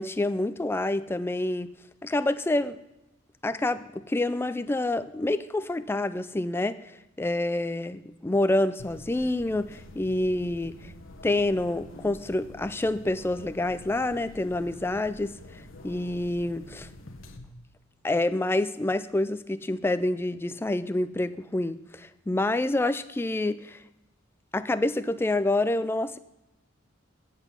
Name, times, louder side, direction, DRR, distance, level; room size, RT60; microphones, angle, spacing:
voice 1, 0.0-1.7 2.0-2.8 3.4-10.9 11.2-15.3 15.8-16.9 18.0-23.8 24.5-26.2, left 2 dB, 10° left, 13 dB, 0.3 m, -27 dB
sound 1, 8.8-17.4, left 1 dB, 75° left, 1.0 m, -47 dB
8.1 x 8.0 x 5.4 m, 0.92 s
head